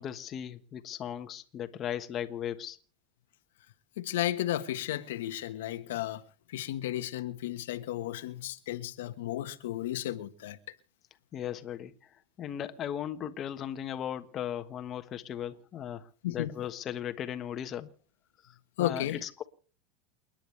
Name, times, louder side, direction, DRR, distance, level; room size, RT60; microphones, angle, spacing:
voice 1, 0.0-2.8 11.3-11.9 12.4-17.9 18.8-19.4, left 10 dB, 30° left, 1.3 m, -37 dB
voice 2, 4.0-6.2 6.5-10.6 16.2-16.5 18.8-19.2, left 13 dB, 85° left, 1.3 m, -33 dB
29.0 x 10.5 x 3.3 m
supercardioid pair, 145°, 0 cm